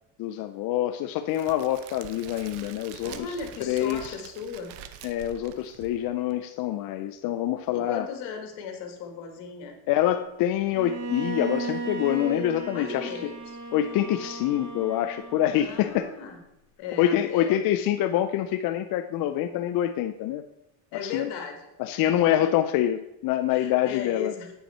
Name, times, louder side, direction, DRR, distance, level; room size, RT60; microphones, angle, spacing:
voice 1, 0.2-3.4 3.6-4.1 5.0-8.1 9.9-13.1 13.7-16.1 17.0-20.4 21.0-21.3 21.8-24.3, left 12 dB, 55° left, 7 dB, 0.5 m, -26 dB
Crackle, 1.3-6.3, right 10 dB, 75° right, 0.8 m, -45 dB
voice 2, 3.0-4.7 7.7-9.8 12.7-13.6 15.6-16.4 16.8-17.6 20.9-21.7 22.0-22.5 23.5-24.5, left 5 dB, 75° left, 4 dB, 1.7 m, -37 dB
Bowed string instrument, 10.7-15.7, right 3 dB, 45° right, 1.7 m, -35 dB
8.8 x 5.7 x 4.2 m, 0.89 s
cardioid pair, 130°, 42 cm